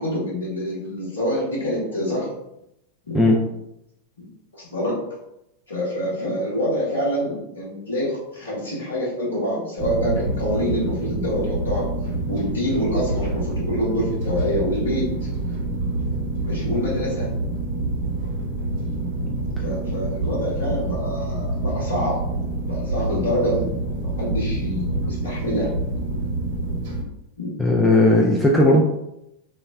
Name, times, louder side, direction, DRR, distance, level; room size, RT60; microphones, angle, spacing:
voice 1, 0.0-2.3 3.0-3.2 4.5-5.0 5.7-11.9 12.1-15.2 16.4-17.3 19.6-22.2 22.7-25.7 27.4-27.5, equal, 70° left, -6 dB, 1.0 m, -26 dB
sound 1, 9.8-27.0, right 2 dB, 50° right, 0.7 m, -27 dB
voice 2, 27.6-28.8, left 1 dB, 5° left, -3 dB, 0.4 m, -16 dB
2.3 x 2.0 x 3.3 m, 0.84 s
figure-of-eight pair, 90°, 0 cm